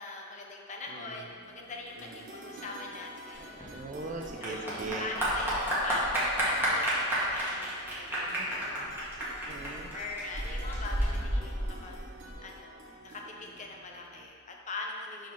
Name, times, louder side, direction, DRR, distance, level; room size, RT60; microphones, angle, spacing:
voice 1, 0.0-3.8 4.4-8.9 9.9-12.0 12.4-15.3, left 3 dB, 35° left, 0 dB, 0.7 m, -42 dB
voice 2, 0.9-1.3 2.0-2.3 3.7-5.1 9.5-9.9, right 3 dB, 40° right, 2 dB, 0.5 m, -40 dB
sound 1, 1.1-14.3, right 1 dB, 65° right, 1.1 m, -50 dB
Clapping / Applause, 3.3-12.3, equal, 10° right, 1.5 m, -31 dB
5.1 x 3.8 x 5.7 m, 2.2 s
head